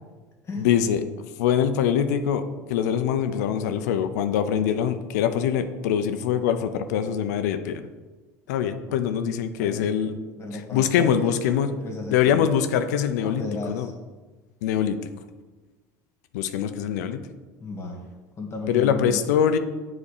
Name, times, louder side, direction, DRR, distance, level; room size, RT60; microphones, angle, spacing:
voice 1, 0.6-1.0 1.4-7.8 8.5-10.2 10.5-11.7 12.1-13.9 14.6-15.0 16.3-17.3 18.7-19.6, left 8 dB, 85° left, 9 dB, 0.6 m, -23 dB
voice 2, 10.3-12.5 13.2-13.9 17.6-18.0 18.4-19.2, left 2 dB, 30° left, 2 dB, 1.8 m, -34 dB
7.3 x 4.2 x 6.6 m, 1.3 s
supercardioid pair, 100°, 9 cm